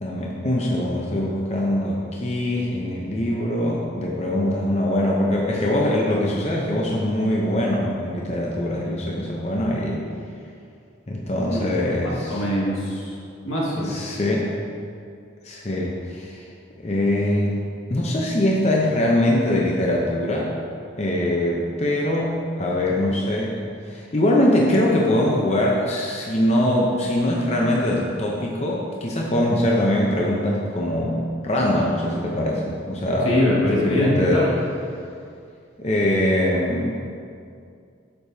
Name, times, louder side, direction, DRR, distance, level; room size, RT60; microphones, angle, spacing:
voice 1, 0.0-10.0 11.1-12.4 13.8-14.5 15.4-16.4 16.8-17.6 17.9-20.5 21.0-23.6 23.8-33.3 33.7-34.4 35.8-37.0, left 1 dB, 35° left, -2 dB, 0.6 m, -22 dB
voice 2, 11.5-13.1 13.4-14.0 33.3-34.5, left 1 dB, 85° left, -5 dB, 1.8 m, -23 dB
8.8 x 6.8 x 2.7 m, 2.4 s
head